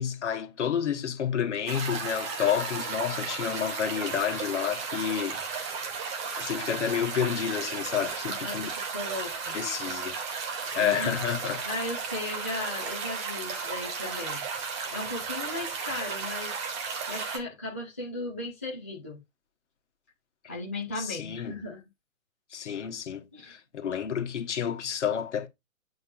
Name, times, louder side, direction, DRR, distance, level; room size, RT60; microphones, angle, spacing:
voice 1, 0.0-5.4 6.2-8.7 9.5-10.2 10.7-11.6 21.0-21.5 22.5-25.5, left 8 dB, 60° left, 1.4 m, -30 dB
sound 1, 1.7-17.4, right 5 dB, 15° right, 0.9 m, -34 dB
voice 2, 8.2-9.6 10.8-11.2 11.6-14.4 14.9-16.6 17.1-19.2 20.5-21.8 23.3-23.6, left 2 dB, 10° left, 0.3 m, -36 dB
8.3 x 5.3 x 2.5 m
figure-of-eight pair, 130°, 40 cm